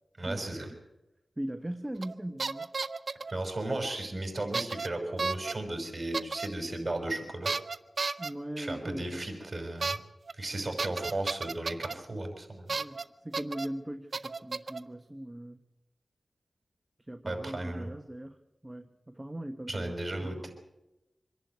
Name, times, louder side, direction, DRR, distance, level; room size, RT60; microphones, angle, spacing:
voice 1, 0.2-0.7 3.3-7.5 8.6-10.0 10.3-12.7 17.2-17.9 19.7-20.5, right 2 dB, 35° right, 4 dB, 5.9 m, -35 dB
voice 2, 1.4-2.7 8.2-9.2 12.7-13.0 13.2-15.6 17.1-18.4 18.6-19.9 20.2-20.4, right 1 dB, 20° right, 7 dB, 1.2 m, -39 dB
sound 1, 2.0-2.1 2.4-3.3 4.5-4.9 5.2-5.5 6.1-6.5 7.5-8.3 9.8-10.0 10.3-10.4 10.8-11.9 12.7-13.0 13.3-13.7 14.1-14.8, right 4 dB, 65° right, 0.8 m, -32 dB
25.5 x 11.0 x 9.5 m, 0.96 s
cardioid pair, 55°, 0 cm